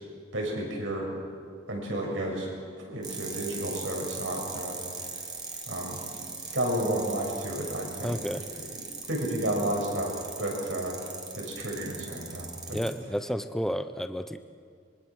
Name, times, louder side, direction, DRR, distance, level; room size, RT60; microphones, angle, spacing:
voice 1, 0.3-1.1 1.7-2.5 2.9-4.8 5.7-6.0 6.5-8.2 9.1-10.9 11.3-12.8, right 1 dB, 75° right, -1 dB, 6.9 m, -31 dB
sound 1, 3.0-12.9, right 4 dB, 20° right, 2.5 m, -40 dB
voice 2, 8.0-8.5 12.7-14.4, equal, ahead, 10 dB, 0.8 m, -31 dB
25.0 x 23.5 x 6.5 m, 2.1 s
head